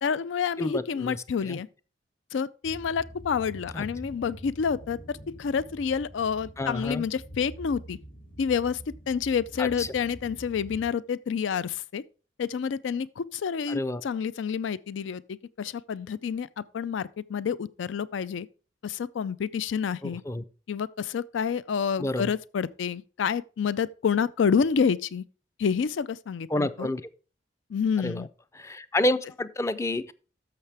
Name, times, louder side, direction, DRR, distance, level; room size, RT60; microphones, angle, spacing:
voice 1, 0.0-1.7 2.3-8.0 8.4-8.8 9.1-12.0 12.4-18.5 18.8-20.2 20.7-25.2 25.6-26.9 27.7-28.3, left 6 dB, 90° left, 0.4 m, -28 dB
voice 2, 0.6-1.6 3.7-3.9 6.6-7.0 9.6-9.9 13.7-14.0 20.0-20.4 22.0-22.3 26.5-27.0 28.0-28.3 28.5-30.1, left 1 dB, 15° left, 0.4 m, -29 dB
sound 1, 2.6-10.9, right 1 dB, 50° left, 2.2 m, -45 dB
13.0 x 6.6 x 3.4 m
head